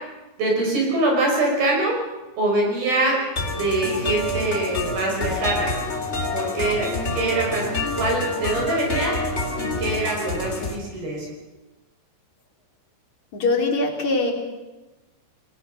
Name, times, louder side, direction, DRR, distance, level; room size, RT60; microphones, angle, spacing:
voice 1, 0.4-1.9 2.4-3.2 3.5-5.8 6.3-7.7 8.0-9.2 9.6-11.3, right 2 dB, 55° right, 0 dB, 7.3 m, -24 dB
sound 1, 3.4-10.7, left 2 dB, 20° left, 2.0 m, -27 dB
voice 2, 13.3-14.3, left 3 dB, 45° left, 1 dB, 4.6 m, -22 dB
29.0 x 20.0 x 6.6 m, 1.1 s
omnidirectional pair, 5.0 m